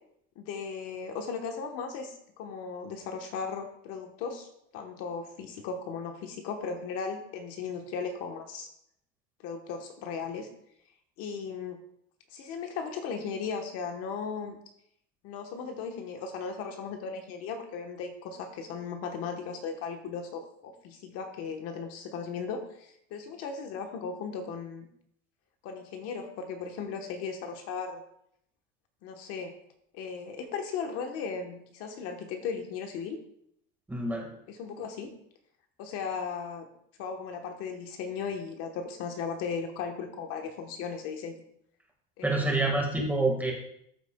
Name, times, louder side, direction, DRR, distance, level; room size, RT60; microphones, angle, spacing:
voice 1, 0.4-8.7 9.4-10.5 11.2-11.8 12.3-14.6 15.2-24.9 25.6-28.0 29.0-29.6 29.9-33.2 34.5-35.1 35.8-36.7 37.0-41.4 42.2-42.7, left 5 dB, 50° left, 4 dB, 1.2 m, -37 dB
voice 2, 33.9-34.3 42.2-43.5, right 2 dB, 5° right, 0 dB, 1.7 m, -27 dB
14.0 x 8.2 x 2.3 m, 0.73 s
cardioid pair, 165°, 30 cm